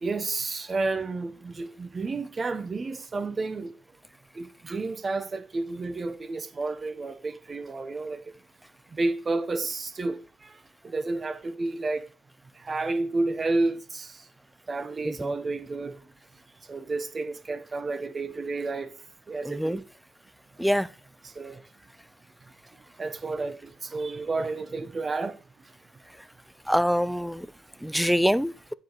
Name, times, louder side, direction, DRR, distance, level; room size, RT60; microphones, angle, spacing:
voice 1, 0.0-3.7 4.4-8.2 8.9-10.5 10.8-12.0 12.6-14.2 14.7-16.0 16.7-18.9 19.3-19.8 21.4-21.6 23.0-25.4, right 3 dB, 35° right, 0.8 m, -31 dB
voice 2, 19.4-19.8 20.6-20.9 26.7-27.5 27.8-28.5, equal, ahead, 0.4 m, -24 dB
9.5 x 4.9 x 3.9 m
cardioid pair, 90°, 0 cm